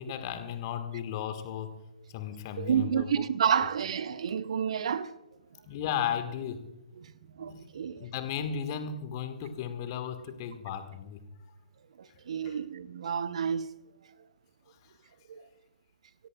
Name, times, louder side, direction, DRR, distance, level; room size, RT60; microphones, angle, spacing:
voice 1, 0.0-1.7 2.1-3.2 5.7-6.6 7.4-7.6 7.9-11.2 12.4-12.6, left 8 dB, 35° left, 1.5 m, -35 dB
voice 2, 2.6-5.1 7.4-8.0 12.3-13.6 15.3-15.4, right 8 dB, 50° right, 0.7 m, -29 dB
25.5 x 17.0 x 2.3 m
figure-of-eight pair, 125°, 4 cm